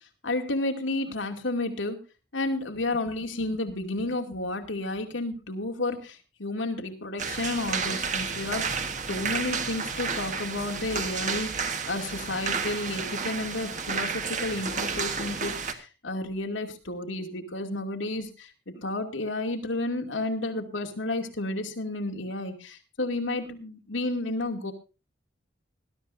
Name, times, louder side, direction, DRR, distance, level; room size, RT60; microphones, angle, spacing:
voice 1, 0.2-2.0 2.3-24.7, left 2 dB, 90° left, 3 dB, 2.5 m, -31 dB
sound 1, 7.2-15.7, right 5 dB, 40° right, 1.4 m, -31 dB
20.0 x 12.5 x 2.6 m, 0.31 s
head